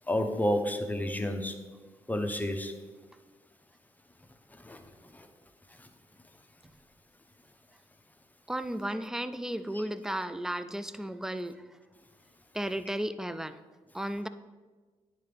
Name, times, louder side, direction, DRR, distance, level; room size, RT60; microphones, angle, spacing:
voice 1, 0.1-1.5 2.1-2.7 4.7-4.8 9.7-9.8, left 1 dB, 15° left, 6 dB, 0.8 m, -30 dB
voice 2, 8.5-11.6 12.5-13.6 13.9-14.3, right 1 dB, 5° right, 12 dB, 0.3 m, -34 dB
9.6 x 3.8 x 3.4 m, 1.4 s
supercardioid pair, 55°, 12 cm